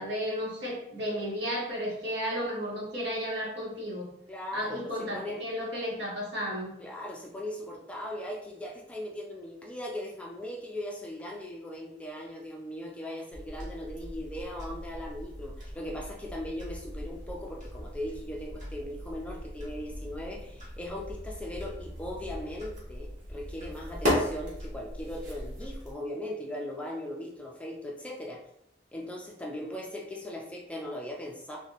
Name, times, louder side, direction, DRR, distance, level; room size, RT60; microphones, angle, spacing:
voice 1, 0.0-4.1 4.5-6.7, equal, 65° right, -4 dB, 1.3 m, -33 dB
voice 2, 4.3-5.4 6.8-28.4 28.9-31.6, left 1 dB, 5° left, -2 dB, 0.4 m, -39 dB
sound 1, 13.3-25.9, equal, 45° right, 1.1 m, -37 dB
3.2 x 2.8 x 2.9 m, 0.77 s
head